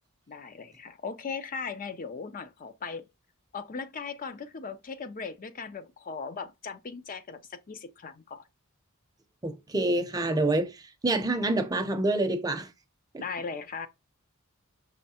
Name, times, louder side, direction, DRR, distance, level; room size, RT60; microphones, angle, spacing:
voice 1, 0.3-3.0 3.5-8.5 13.2-13.9, left 5 dB, 40° left, 0.5 m, -38 dB
voice 2, 9.4-12.7 13.1-13.2, right 2 dB, 15° right, 0.6 m, -27 dB
5.6 x 3.1 x 2.8 m
head